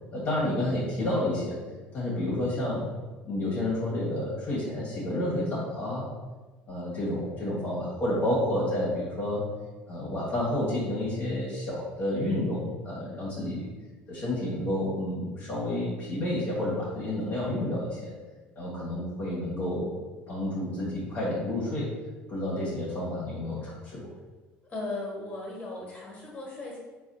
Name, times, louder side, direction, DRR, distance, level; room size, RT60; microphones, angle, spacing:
voice 1, 0.1-1.6 1.9-2.8 3.2-6.1 6.7-9.4 9.9-13.7 14.1-18.1 18.6-19.9 20.3-21.9 22.3-24.0, left 1 dB, 45° left, -8 dB, 1.2 m, -30 dB
voice 2, 24.7-26.8, left 2 dB, 30° left, -3 dB, 1.5 m, -37 dB
4.0 x 2.4 x 2.6 m, 1.2 s
supercardioid pair, 100°, 5 cm